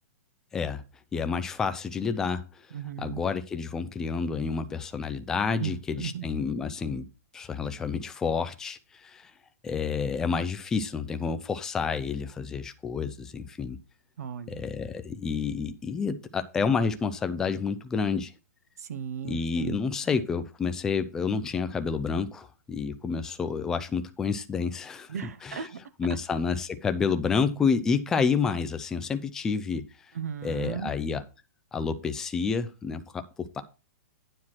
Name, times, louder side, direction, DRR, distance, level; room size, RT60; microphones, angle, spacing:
voice 1, 0.5-0.8 1.1-2.5 3.0-7.1 7.3-9.3 9.6-13.8 14.5-18.3 19.2-25.1 25.4-25.7 26.0-29.8 30.4-31.2 31.7-33.6, left 5 dB, 5° left, 9 dB, 0.4 m, -29 dB
voice 2, 2.7-3.2 5.6-6.3 14.2-14.6 18.8-19.8 25.1-25.8 30.1-30.9, right 7 dB, 85° right, 14 dB, 1.1 m, -36 dB
9.6 x 4.5 x 5.9 m, 0.30 s
hypercardioid pair, 180°, 8 cm